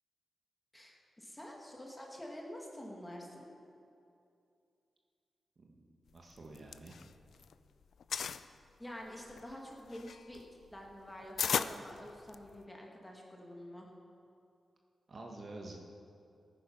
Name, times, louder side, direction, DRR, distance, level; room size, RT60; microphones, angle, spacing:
voice 1, 0.7-3.5 8.8-10.5 10.7-13.9, left 1 dB, 10° left, -1 dB, 2.1 m, -48 dB
voice 2, 5.6-7.0 15.1-15.8, right 2 dB, 45° right, 1 dB, 1.5 m, -49 dB
sound 1, 6.4-7.5 7.8-8.4 9.1-12.6, left 7 dB, 80° left, 0.4 m, -37 dB
17.0 x 9.6 x 5.5 m, 2.5 s
wide cardioid pair, 125°, 0 cm